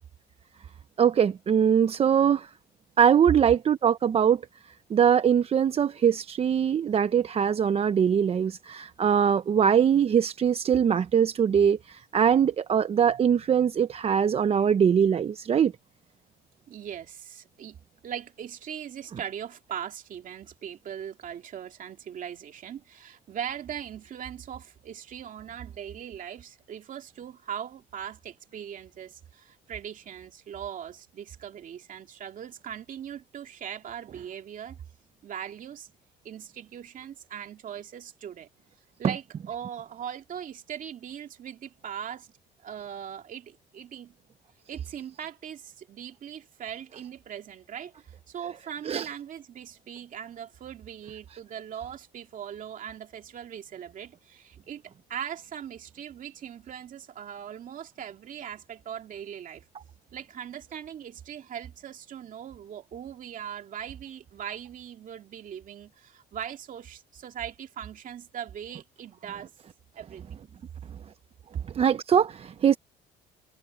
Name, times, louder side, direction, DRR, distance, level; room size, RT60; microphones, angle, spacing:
voice 1, 1.0-2.5 3.0-4.4 4.9-15.7 48.9-49.1 71.7-72.8, right 8 dB, 35° right, 0.6 m, -22 dB
voice 2, 13.0-13.5 16.7-34.8 35.2-35.9 36.2-38.5 39.0-42.3 42.6-44.1 44.7-54.8 55.1-59.6 60.1-69.5 70.0-70.2 71.7-71.8, right 9 dB, 50° right, 2.4 m, -40 dB
cardioid pair, 110°, 17 cm